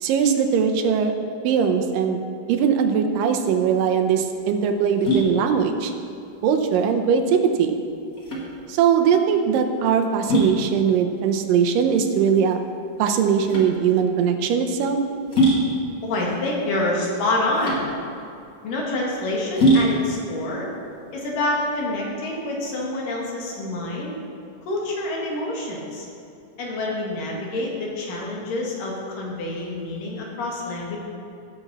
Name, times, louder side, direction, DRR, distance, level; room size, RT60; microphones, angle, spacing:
voice 1, 0.0-1.2 1.4-2.2 2.5-5.9 6.4-7.8 8.7-12.6 13.0-15.0, right 7 dB, 90° right, 5 dB, 2.5 m, -20 dB
sound 1, 3.5-22.0, right 1 dB, 30° left, 1.9 m, -26 dB
voice 2, 16.0-17.9 18.6-20.7 21.1-24.1 24.6-26.1 26.6-31.0, left 2 dB, 80° left, -3 dB, 3.4 m, -27 dB
17.0 x 7.2 x 4.1 m, 2.6 s
omnidirectional pair, 3.8 m